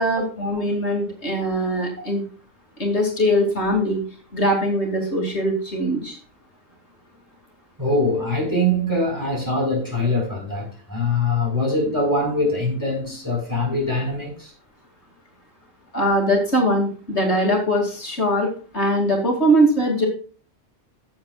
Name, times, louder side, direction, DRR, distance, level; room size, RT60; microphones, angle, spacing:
voice 1, 0.0-2.2 2.8-4.0 4.3-6.2 15.9-20.1, equal, 60° left, 2.7 m, -21 dB
voice 2, 7.8-14.5, left 1 dB, 15° right, 4.8 m, -23 dB
16.0 x 7.4 x 2.4 m
omnidirectional pair, 1.3 m